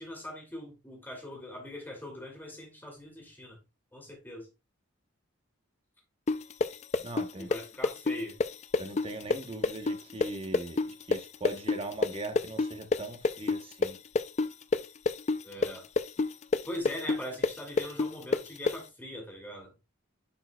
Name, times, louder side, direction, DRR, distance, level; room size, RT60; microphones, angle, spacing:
voice 1, 0.0-3.6 3.9-4.5 7.4-8.4 15.4-15.9 16.7-19.7, left 1 dB, 10° left, 2.3 m, -41 dB
sound 1, 6.3-13.9 14.2-18.8, left 3 dB, 30° left, 0.3 m, -27 dB
voice 2, 7.0-7.5 8.8-10.8 11.1-14.0, right 2 dB, 25° right, 0.9 m, -40 dB
10.0 x 4.7 x 2.2 m
head